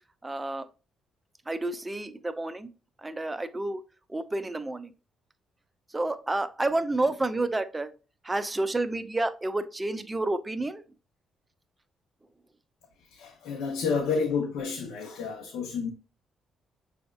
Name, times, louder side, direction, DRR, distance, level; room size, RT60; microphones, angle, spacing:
voice 1, 0.2-0.7 1.5-2.7 3.0-3.8 4.1-4.9 5.9-7.9 8.2-10.8, right 2 dB, 20° right, 0.5 m, -30 dB
voice 2, 13.1-15.9, left 5 dB, 90° left, 0.7 m, -30 dB
6.1 x 3.4 x 2.4 m
cardioid pair, 90°, 0 cm